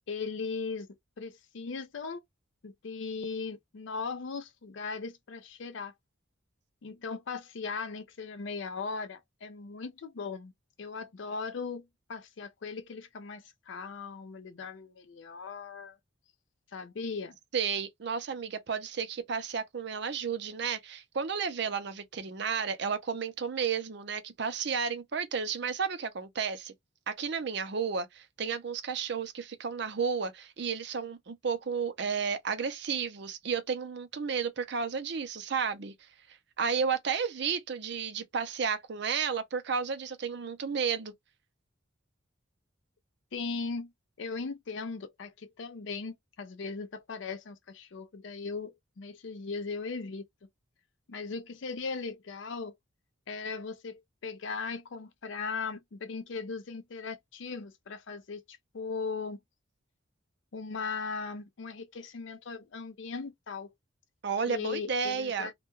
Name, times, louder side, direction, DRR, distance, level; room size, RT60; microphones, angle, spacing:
voice 1, 0.1-2.2 2.6-5.9 6.8-10.5 10.8-16.0 16.7-17.4 43.3-43.9 44.2-50.5 51.1-52.8 53.3-59.4 60.5-63.7 64.5-65.5, left 4 dB, 65° left, 0.5 m, -38 dB
voice 2, 17.5-26.7 27.1-35.9 36.6-41.1 64.2-65.5, right 6 dB, 55° right, 0.5 m, -32 dB
2.2 x 2.2 x 3.0 m
head